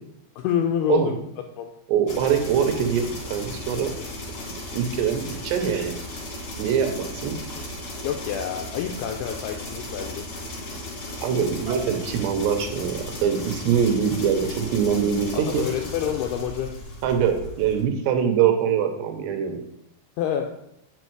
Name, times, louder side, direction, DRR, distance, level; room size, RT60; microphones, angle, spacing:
voice 1, 0.4-1.2 1.6-1.7 8.0-10.2 15.5-16.7 20.2-20.5, left 9 dB, 85° left, 4 dB, 2.3 m, -27 dB
voice 2, 1.9-3.9 4.6-5.9 6.6-7.4 11.2-15.7 17.0-19.6, right 7 dB, 75° right, 5 dB, 2.9 m, -23 dB
sound 1, 2.1-17.8, left 1 dB, 40° left, 2.6 m, -36 dB
8.2 x 6.3 x 4.6 m, 0.78 s
omnidirectional pair, 5.2 m